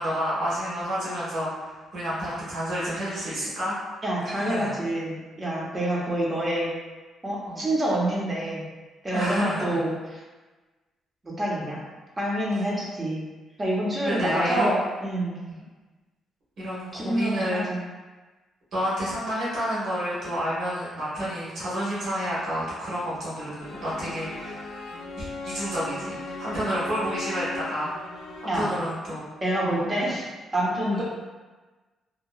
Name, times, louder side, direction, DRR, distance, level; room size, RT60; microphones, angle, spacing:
voice 1, 0.0-3.8 4.2-4.7 7.5-7.6 9.1-9.8 14.0-14.7 15.5-15.6 16.6-17.7 18.7-24.6 25.2-28.0 28.4-29.3 29.6-29.9 30.9-31.0, equal, 65° right, -9 dB, 1.3 m, -30 dB
voice 2, 4.0-6.7 7.2-8.7 9.0-9.9 11.2-11.8 12.2-13.3 13.6-15.4 16.9-17.8 28.5-28.7 29.4-31.0, right 1 dB, 25° right, -4 dB, 0.8 m, -27 dB
sound 1, 23.6-29.0, left 2 dB, 85° left, 0.4 m, -38 dB
2.8 x 2.3 x 2.3 m, 1.2 s
cardioid pair, 90°, 0 cm